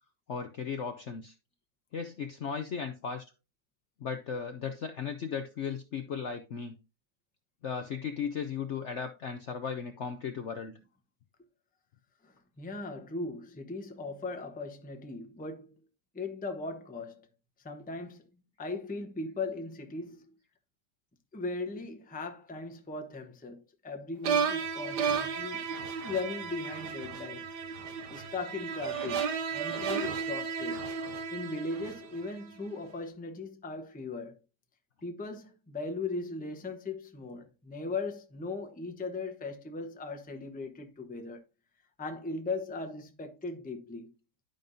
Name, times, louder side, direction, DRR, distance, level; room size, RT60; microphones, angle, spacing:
voice 1, 0.3-1.3 1.9-3.2 4.0-6.8 7.6-10.7, left 6 dB, 60° left, 0.8 m, -36 dB
voice 2, 12.2-15.7 16.1-17.2 17.6-18.3 18.6-20.2 21.3-25.7 26.0-27.5 28.1-30.8 31.3-34.4 35.0-41.4 42.0-44.1, left 3 dB, 10° left, 0.6 m, -38 dB
sound 1, 24.2-32.4, right 6 dB, 75° right, 1.5 m, -33 dB
11.5 x 5.3 x 2.6 m
omnidirectional pair, 1.9 m